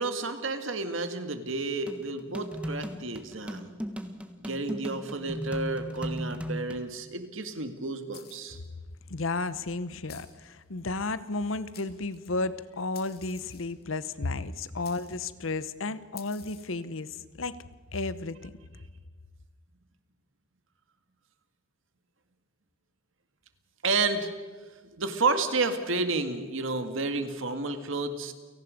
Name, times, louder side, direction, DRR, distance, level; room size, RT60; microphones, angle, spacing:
voice 1, 0.0-3.7 4.4-8.6 23.8-24.3 25.0-28.3, right 3 dB, 70° right, 8 dB, 2.1 m, -31 dB
sound 1, 1.9-6.8, equal, 5° right, 1.5 m, -36 dB
sound 2, 8.1-8.7 10.1-10.5 11.3-11.4 11.7-12.4 12.9-13.8 14.8-15.3 16.2-16.8, left 11 dB, 50° left, 2.1 m, -51 dB
voice 2, 9.1-17.6 17.9-18.5, left 3 dB, 75° left, 15 dB, 1.0 m, -33 dB
30.0 x 18.0 x 5.3 m, 1.4 s
head